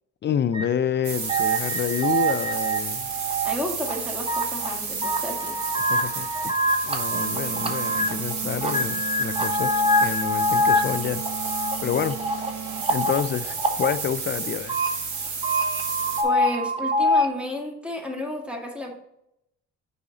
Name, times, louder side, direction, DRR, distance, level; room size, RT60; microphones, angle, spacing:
voice 1, 0.2-3.1 5.8-6.6 6.8-11.2 11.8-12.2 12.9-14.8, left 8 dB, 40° left, 0.4 m, -28 dB
sound 1, 0.5-0.6 1.3-3.5 3.8-4.7 5.0-8.3 8.6-13.9 14.5-14.9 15.2-17.3, equal, 20° right, 1.1 m, -25 dB
sound 2, 1.0-16.2, right 5 dB, 75° right, 1.6 m, -32 dB
voice 2, 3.4-5.6 16.2-18.9, left 1 dB, 5° right, 1.7 m, -32 dB
sound 3, 7.1-13.1, right 7 dB, 55° right, 0.9 m, -37 dB
6.9 x 4.9 x 3.9 m
cardioid pair, 90°, 30 cm